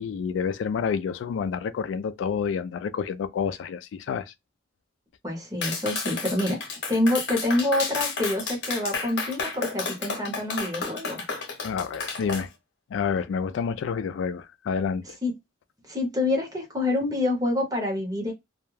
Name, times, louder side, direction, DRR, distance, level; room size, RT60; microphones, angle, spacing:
voice 1, 0.0-4.3 11.6-12.5 12.9-15.2, left 6 dB, 90° left, 0.3 m, -29 dB
voice 2, 5.2-6.6 6.9-11.2 15.2-15.3 15.9-18.3, left 2 dB, 20° right, 0.9 m, -26 dB
Clapping, 5.6-12.4, left 4 dB, 65° left, 0.8 m, -32 dB
2.3 x 2.1 x 3.1 m
head